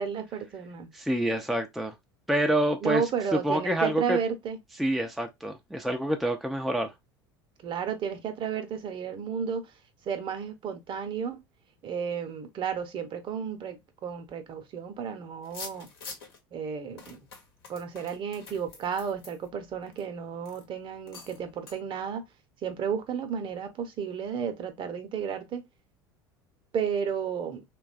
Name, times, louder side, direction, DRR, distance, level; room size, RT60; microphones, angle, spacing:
voice 1, 0.0-0.9 2.8-4.6 7.6-9.7 10.1-11.4 11.8-15.9 16.5-17.2 17.7-22.2 22.6-25.6 26.7-27.6, right 7 dB, 40° right, 0.7 m, -32 dB
voice 2, 0.9-1.9 2.3-3.0 3.3-4.2 4.8-6.9, right 1 dB, ahead, 0.4 m, -27 dB
sound 1, 15.4-16.4 17.0-20.0 20.4-20.6 21.1-21.4 21.7-21.8, left 4 dB, 80° left, 1.0 m, -45 dB
3.0 x 2.3 x 2.5 m
hypercardioid pair, 75°, 12 cm